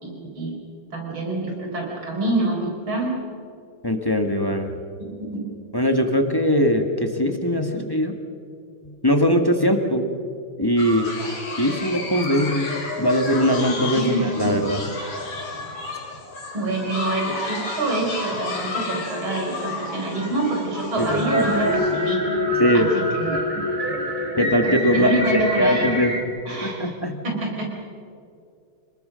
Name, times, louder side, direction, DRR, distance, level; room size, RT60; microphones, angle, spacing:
voice 1, 0.0-0.5 0.9-3.1 5.2-5.5 7.7-7.8 13.9-14.7 16.5-22.2 22.7-23.4 24.6-25.9 26.5-26.9 27.2-27.7, right 2 dB, 70° right, 0 dB, 5.3 m, -26 dB
voice 2, 3.8-4.7 5.7-8.1 8.8-10.2 10.6-11.1 11.6-14.8 21.0-21.5 22.6-22.9 24.4-26.3 26.6-27.2, equal, 15° left, 5 dB, 1.3 m, -21 dB
sound 1, 10.8-22.1, left 3 dB, 65° left, 4.4 m, -32 dB
sound 2, 21.0-26.2, left 1 dB, 20° right, 2.5 m, -25 dB
27.0 x 20.0 x 6.3 m, 2.4 s
omnidirectional pair, 2.3 m